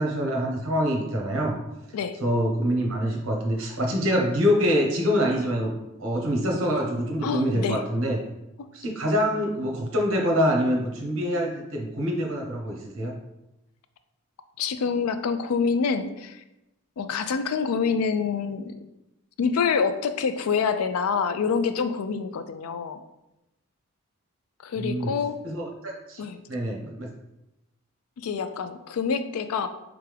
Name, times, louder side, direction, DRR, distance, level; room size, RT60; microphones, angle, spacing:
voice 1, 0.0-1.6 2.2-5.7 6.0-8.2 8.7-13.2 24.8-25.1 25.4-27.1, equal, 70° right, 0 dB, 0.9 m, -25 dB
voice 2, 7.2-7.8 8.6-8.7 14.6-16.4 17.0-18.8 19.4-23.0 24.6-25.4 26.2-26.4 28.2-29.7, left 5 dB, 85° left, 10 dB, 0.4 m, -26 dB
3.6 x 3.4 x 3.4 m, 0.93 s
head